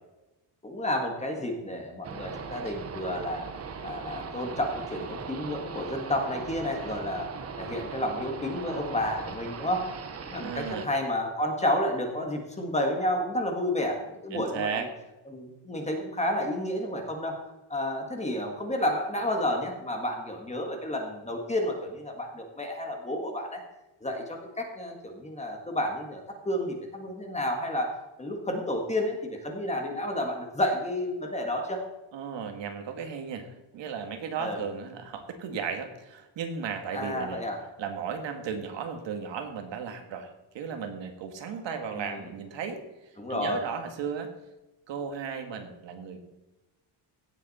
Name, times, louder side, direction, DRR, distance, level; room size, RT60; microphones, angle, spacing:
voice 1, 0.6-3.5 3.8-7.3 7.6-9.9 10.2-14.9 15.3-17.4 17.7-23.6 24.0-27.9 28.2-31.8 34.4-34.6 36.9-37.6 41.9-42.3 43.2-43.6, left 1 dB, 15° left, 2 dB, 1.7 m, -31 dB
sound 1, 2.0-10.9, right 5 dB, 30° right, 0.9 m, -39 dB
voice 2, 10.4-10.9 14.3-14.9 32.1-37.4 37.8-40.3 40.5-42.8 43.3-44.3 44.9-46.2, right 6 dB, 65° right, 6 dB, 1.8 m, -35 dB
16.5 x 8.0 x 4.2 m, 1.0 s
cardioid pair, 175°, 47 cm